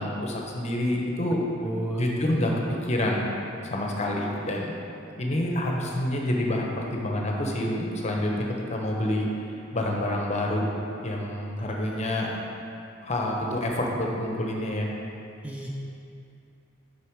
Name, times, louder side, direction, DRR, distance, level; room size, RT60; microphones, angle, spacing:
voice 1, 0.0-1.4 2.0-2.5 2.8-4.8 5.2-9.3 9.7-10.7 11.0-12.5 13.0-14.9, left 1 dB, 35° left, -1 dB, 0.9 m, -28 dB
voice 2, 1.6-2.1 11.6-12.0 15.4-15.7, right 1 dB, 5° right, -3 dB, 0.5 m, -33 dB
6.9 x 5.7 x 4.7 m, 2.7 s
head